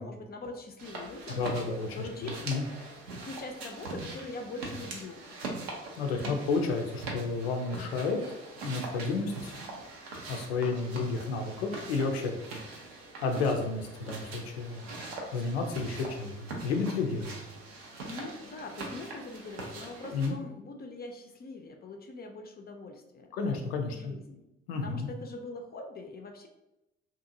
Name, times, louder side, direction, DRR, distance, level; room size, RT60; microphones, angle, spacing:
voice 1, 0.0-1.4 2.0-2.4 3.2-5.2 6.0-6.4 18.0-23.5 23.9-24.4 24.8-26.5, left 3 dB, 30° left, 3 dB, 0.4 m, -43 dB
sound 1, 0.8-20.3, right 2 dB, 85° right, 0.5 m, -42 dB
voice 2, 1.3-2.6 6.0-8.2 8.6-9.6 10.3-12.4 13.2-14.8 15.3-17.4 20.1-20.3 23.3-24.1 24.7-25.1, left 4 dB, 85° left, 3 dB, 0.5 m, -31 dB
2.6 x 2.4 x 2.6 m, 0.93 s
hypercardioid pair, 45°, 30 cm